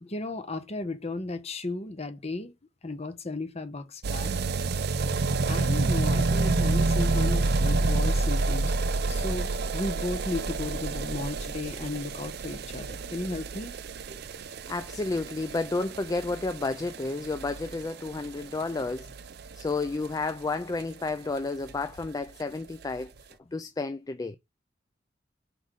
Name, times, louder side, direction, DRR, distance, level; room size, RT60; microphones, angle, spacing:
voice 1, 0.0-2.5 2.8-4.3 5.5-8.7 9.1-13.7, left 2 dB, 35° left, 1.0 m, -35 dB
sound 1, 4.0-20.8 21.1-21.2 21.4-21.5 21.7-21.8 22.0-22.1 22.8-22.9, right 3 dB, 60° right, 0.5 m, -29 dB
voice 2, 14.7-19.1 19.5-23.1 23.5-24.4, left 3 dB, 20° left, 0.3 m, -31 dB
5.1 x 4.0 x 4.8 m
head